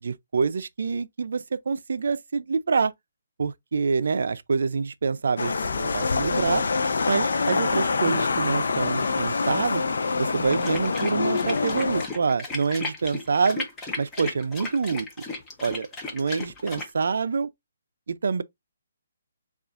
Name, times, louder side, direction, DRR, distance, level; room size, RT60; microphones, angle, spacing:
voice 1, 0.0-2.9 3.4-6.6 7.1-9.8 10.2-13.7 14.0-15.1 15.6-17.5 18.1-18.4, right 5 dB, 65° right, 0.4 m, -26 dB
sound 1, 5.4-12.1, left 4 dB, 70° left, 0.5 m, -25 dB
sound 2, 10.4-16.9, left 3 dB, 10° left, 0.7 m, -35 dB
6.8 x 2.4 x 2.4 m
hypercardioid pair, 170°, 0 cm